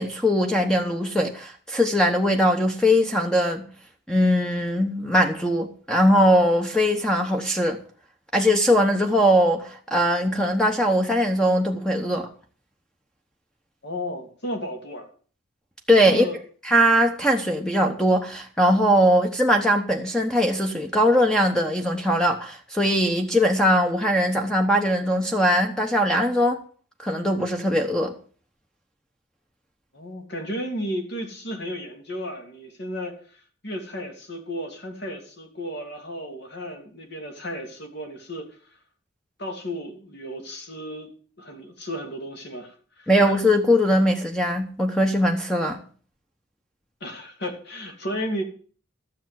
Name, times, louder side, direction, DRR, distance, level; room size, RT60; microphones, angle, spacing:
voice 1, 0.0-3.6 4.1-7.8 8.3-12.3 15.9-16.3 16.6-26.6 27.0-28.1 43.1-45.8, equal, 5° left, 1.0 m, -21 dB
voice 2, 13.8-15.1 16.1-16.4 29.9-38.8 39.4-41.1 41.4-43.1 47.0-48.4, equal, 55° left, 2.9 m, -34 dB
13.0 x 7.4 x 7.5 m
head